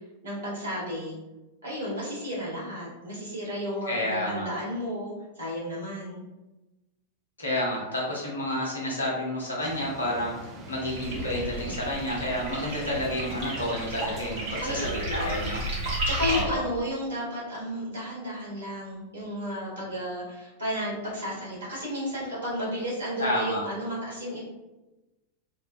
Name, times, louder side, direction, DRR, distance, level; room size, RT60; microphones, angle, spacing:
voice 1, 0.2-1.2 1.6-6.2 14.6-15.5 15.8-24.4, equal, 70° right, -6 dB, 1.2 m, -33 dB
voice 2, 3.9-4.5 7.4-15.6 16.2-16.6 23.2-23.6, left 1 dB, 75° left, -4 dB, 0.8 m, -30 dB
sound 1, 9.6-14.9, right 3 dB, 25° right, 0.4 m, -42 dB
sound 2, 10.8-16.4, right 1 dB, 50° right, 1.1 m, -33 dB
2.6 x 2.1 x 2.5 m, 1.0 s
figure-of-eight pair, 90°, 0 cm